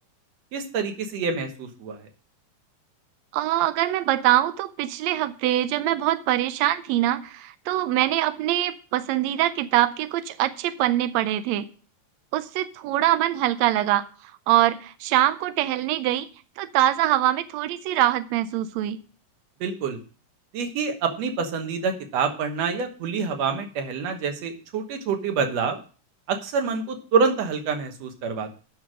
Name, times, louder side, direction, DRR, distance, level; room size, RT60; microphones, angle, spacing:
voice 1, 0.5-2.0 19.6-20.0 20.5-25.8 26.3-28.5, right 5 dB, 60° right, 6 dB, 2.2 m, -26 dB
voice 2, 3.3-11.7 12.3-14.0 14.5-16.3 16.6-19.0, right 13 dB, 85° right, 12 dB, 1.5 m, -23 dB
9.3 x 6.1 x 6.2 m, 0.39 s
omnidirectional pair, 3.7 m